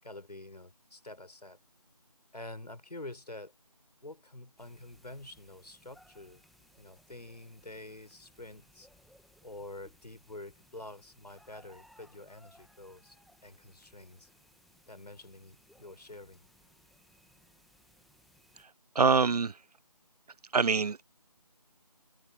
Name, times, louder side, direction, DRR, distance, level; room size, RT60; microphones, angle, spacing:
voice 1, 0.0-1.6 2.3-3.5 4.0-6.4 6.8-8.9 9.4-13.2 13.4-14.3 14.9-16.4, left 2 dB, 80° left, 6.7 m, -47 dB
sound 1, 4.6-18.6, equal, ahead, 1.4 m, -63 dB
voice 2, 19.0-19.5 20.5-21.0, right 5 dB, 70° right, 0.6 m, -24 dB
figure-of-eight pair, 165°, 20 cm